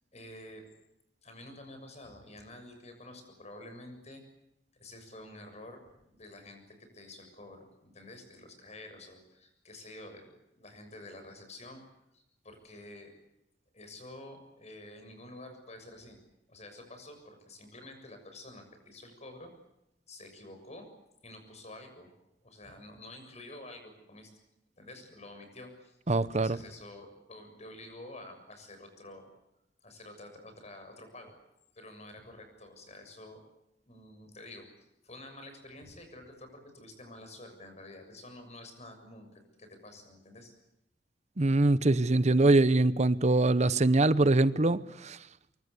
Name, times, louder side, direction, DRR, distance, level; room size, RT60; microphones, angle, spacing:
voice 1, 0.1-0.7 1.2-4.2 4.7-11.8 12.1-13.1 13.7-16.2 16.5-19.5 20.1-20.9 21.2-22.1 22.4-24.3 24.8-29.3 29.8-31.3 31.7-33.4 33.9-40.5, left 1 dB, 40° left, 6.9 m, -49 dB
voice 2, 26.1-26.6 41.4-45.2, right 2 dB, 40° right, 0.9 m, -23 dB
24.5 x 24.0 x 8.3 m
head